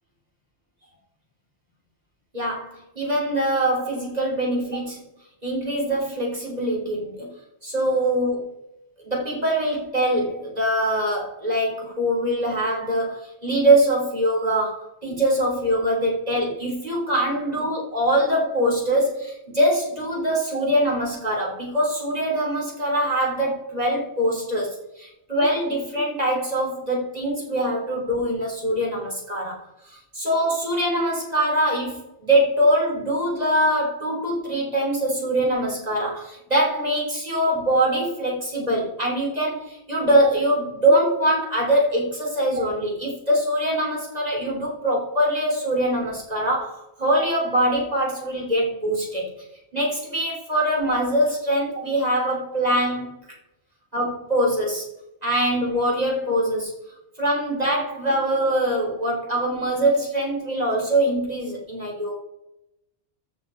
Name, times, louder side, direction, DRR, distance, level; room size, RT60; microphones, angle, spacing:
voice 1, 2.3-5.0 5.4-7.3 7.6-8.5 9.1-29.6 30.1-49.3 49.7-53.2 53.9-54.9 55.2-56.7 57.2-62.1, right 1 dB, 35° right, -2 dB, 3.6 m, -23 dB
13.5 x 7.3 x 4.5 m, 0.85 s
omnidirectional pair, 1.2 m